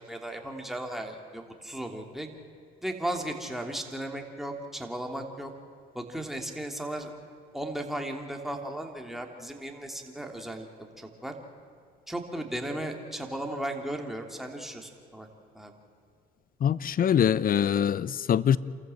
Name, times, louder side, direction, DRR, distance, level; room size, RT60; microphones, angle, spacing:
voice 1, 0.0-2.3 2.8-5.5 5.9-7.1 7.5-11.3 12.1-15.3 15.5-15.7, right 1 dB, ahead, 3.1 m, -36 dB
voice 2, 16.6-18.6, left 9 dB, 45° left, 0.7 m, -23 dB
28.0 x 14.5 x 7.9 m
supercardioid pair, 75°, 20 cm